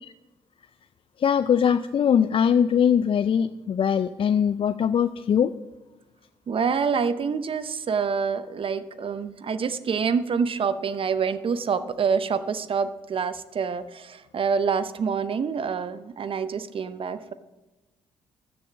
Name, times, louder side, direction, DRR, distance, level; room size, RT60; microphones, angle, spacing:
voice 1, 1.2-5.5, left 8 dB, 45° left, 13 dB, 0.5 m, -21 dB
voice 2, 6.5-17.3, right 6 dB, 45° right, 13 dB, 0.8 m, -26 dB
13.5 x 6.9 x 7.3 m, 1.1 s
hypercardioid pair, 45°, 12 cm